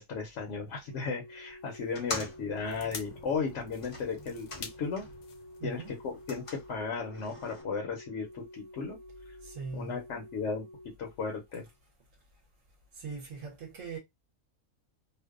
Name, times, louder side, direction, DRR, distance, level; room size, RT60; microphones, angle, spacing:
voice 1, 0.0-5.0 5.6-9.0 9.3-9.4 9.7-10.6 11.0-11.6, left 5 dB, 65° left, 0.8 m, -35 dB
Organ, 0.8-11.7 12.9-13.0, left 1 dB, 40° right, 0.3 m, -51 dB
sound 1, 1.8-5.3 5.6-7.6, left 2 dB, 50° left, 0.4 m, -44 dB
sound 2, 2.6-7.2 7.5-7.6, left 5 dB, 80° left, 1.1 m, -48 dB
voice 2, 5.6-6.0 9.4-10.0 12.9-14.0, right 5 dB, 70° right, 0.9 m, -40 dB
2.5 x 2.1 x 2.3 m
omnidirectional pair, 1.5 m